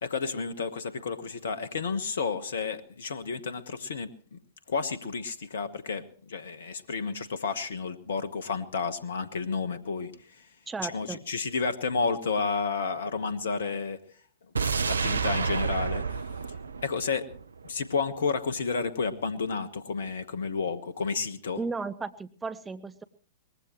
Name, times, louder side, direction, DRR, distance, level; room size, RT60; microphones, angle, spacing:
voice 1, 0.0-4.4 4.7-10.5 10.8-14.0 14.8-16.2 16.8-17.3 17.6-21.6, left 5 dB, 65° left, 14 dB, 1.2 m, -31 dB
voice 2, 10.7-11.2 21.6-23.0, right 4 dB, 15° right, 12 dB, 1.0 m, -35 dB
sound 1, 14.6-17.7 18.0-18.1, right 5 dB, 80° right, 0.7 m, -30 dB
23.5 x 20.0 x 3.1 m, 0.42 s
figure-of-eight pair, 105°, 0 cm